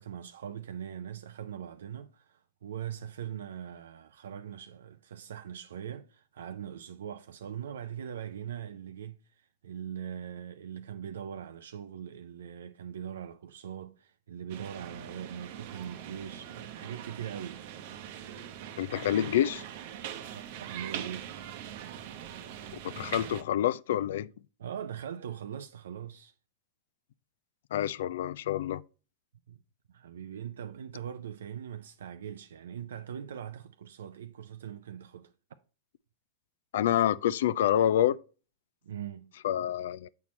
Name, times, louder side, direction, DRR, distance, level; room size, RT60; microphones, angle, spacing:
voice 1, 0.0-17.6 20.3-21.5 24.6-26.3 29.5-29.6 29.9-35.3 38.8-39.3, right 9 dB, 80° right, 0.4 m, -41 dB
sound 1, 14.5-23.4, right 10 dB, 60° right, 0.7 m, -42 dB
voice 2, 18.8-19.6 22.8-24.3 27.7-28.8 36.7-38.2 39.4-40.1, left 11 dB, 70° left, 0.3 m, -27 dB
7.1 x 4.4 x 4.2 m
hypercardioid pair, 110°, 0 cm